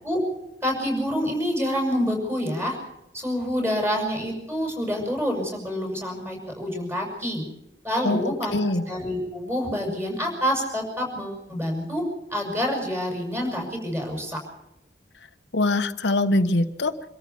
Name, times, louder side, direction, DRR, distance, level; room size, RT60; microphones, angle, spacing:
voice 1, 0.6-2.8 3.1-7.4 7.8-12.0 12.3-14.4, equal, 15° right, 2 dB, 7.1 m, -27 dB
voice 2, 8.0-8.8 15.5-16.9, left 2 dB, 70° left, 8 dB, 1.1 m, -23 dB
26.0 x 13.5 x 7.2 m, 0.89 s
head